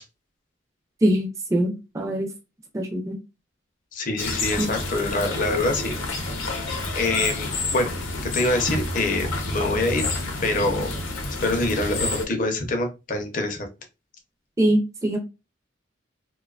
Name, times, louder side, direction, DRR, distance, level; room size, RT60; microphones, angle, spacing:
voice 1, 1.0-2.3 2.7-3.2 4.6-4.7 14.6-15.2, right 1 dB, 15° right, 2 dB, 0.4 m, -23 dB
voice 2, 3.9-5.9 6.9-7.9 8.2-10.0 10.4-10.9 11.4-13.7, left 2 dB, 45° left, 4 dB, 0.6 m, -25 dB
sound 1, 4.2-12.2, left 2 dB, 85° left, 0.7 m, -29 dB
2.5 x 2.2 x 2.3 m, 0.27 s
head